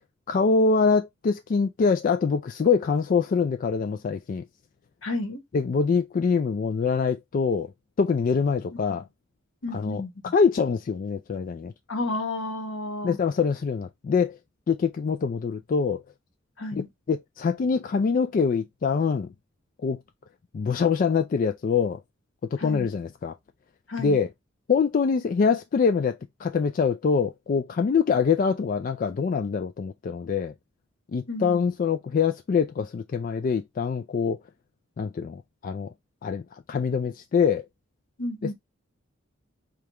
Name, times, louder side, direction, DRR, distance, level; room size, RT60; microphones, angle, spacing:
voice 1, 0.3-4.4 5.5-7.7 8.0-9.0 9.7-10.0 10.3-11.7 13.0-14.4 14.7-16.0 16.7-19.3 19.8-20.0 20.5-22.0 22.5-23.3 24.0-24.3 24.7-30.5 31.1-34.4 35.0-35.9 36.2-37.6, left 5 dB, 45° left, 0.3 m, -24 dB
voice 2, 5.0-5.4 9.6-10.1 11.9-13.2 16.6-16.9 22.6-22.9 23.9-24.2 31.3-31.7 38.2-38.5, left 2 dB, 75° left, 1.1 m, -31 dB
5.0 x 2.3 x 2.9 m
head